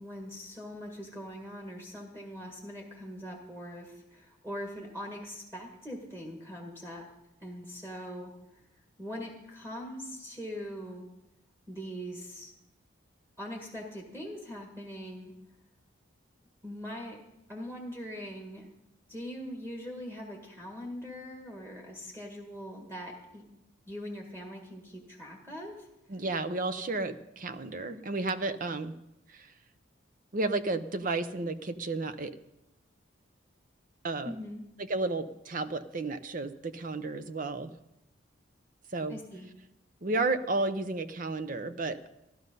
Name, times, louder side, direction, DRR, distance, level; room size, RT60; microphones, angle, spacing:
voice 1, 0.0-7.0 7.4-8.3 9.0-11.1 11.7-12.5 13.4-15.3 16.6-17.2 17.5-18.7 19.1-23.4 23.9-25.9 34.2-34.6 39.1-39.5, equal, 15° right, -1 dB, 1.7 m, -41 dB
voice 2, 26.1-28.9 29.3-29.5 30.3-32.3 34.0-34.3 34.9-37.7 38.9-39.2 40.0-42.1, right 3 dB, 40° right, 11 dB, 0.6 m, -32 dB
14.0 x 12.0 x 5.4 m, 0.89 s
head